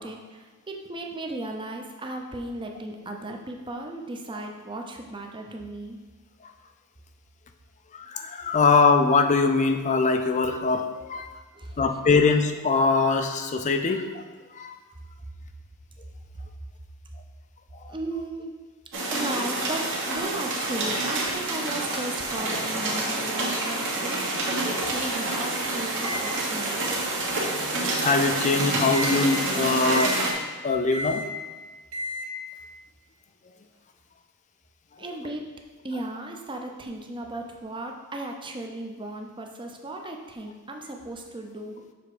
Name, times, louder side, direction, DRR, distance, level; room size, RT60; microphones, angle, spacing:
voice 1, 0.0-6.0 11.5-11.8 17.9-18.5 19.1-26.8 35.0-35.4 35.8-41.8, right 2 dB, 20° right, 2 dB, 0.6 m, -36 dB
voice 2, 8.1-11.3 11.8-14.2 14.6-14.7 28.0-30.1 30.6-31.2, left 4 dB, 35° left, 6 dB, 0.5 m, -22 dB
sound 1, 18.9-30.3, right 2 dB, 60° right, 1.4 m, -28 dB
Microwave oven, 26.0-28.4 28.9-29.2 29.9-30.3 30.9-31.3 31.9-32.3, left 1 dB, 85° right, 0.9 m, -35 dB
6.9 x 3.5 x 4.9 m, 1.4 s
head